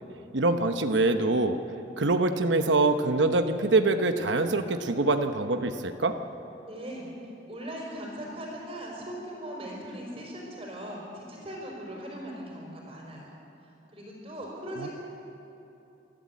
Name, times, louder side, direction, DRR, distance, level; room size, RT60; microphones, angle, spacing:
voice 1, 0.3-1.6 2.0-6.2 14.8-14.9, right 2 dB, 90° right, 7 dB, 1.0 m, -24 dB
voice 2, 6.6-14.9, equal, 30° right, -4 dB, 4.7 m, -40 dB
27.5 x 12.0 x 8.4 m, 2.9 s
head